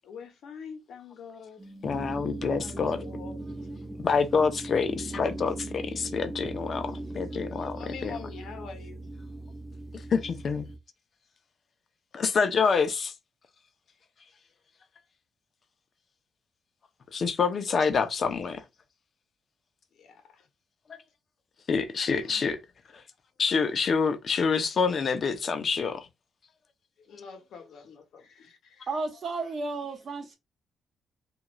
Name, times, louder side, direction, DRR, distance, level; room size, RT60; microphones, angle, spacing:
voice 1, 0.0-1.7 2.6-3.4 7.7-9.1 20.0-20.5 22.2-22.5 27.1-28.9, left 6 dB, 70° left, 0.9 m, -45 dB
sound 1, 1.6-10.8, right 2 dB, 15° right, 0.6 m, -39 dB
voice 2, 1.8-3.0 4.0-8.2 10.1-10.7 12.1-13.1 17.1-18.6 20.9-21.0 21.7-22.6 23.4-26.1, left 5 dB, 50° left, 0.6 m, -27 dB
voice 3, 28.9-30.4, right 3 dB, 50° right, 0.9 m, -33 dB
2.4 x 2.4 x 3.0 m
cardioid pair, 90°, 0 cm